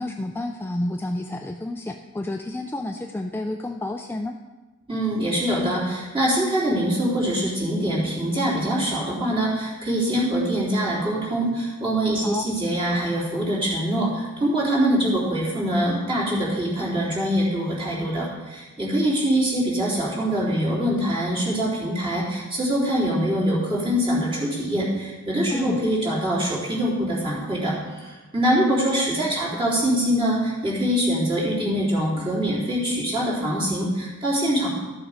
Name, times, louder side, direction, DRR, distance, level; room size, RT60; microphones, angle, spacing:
voice 1, 0.0-4.4 12.2-12.4 25.5-25.8, left 1 dB, 10° left, 3 dB, 0.4 m, -30 dB
voice 2, 4.9-34.7, equal, 25° right, -7 dB, 3.6 m, -24 dB
13.5 x 7.0 x 5.1 m, 1.2 s
head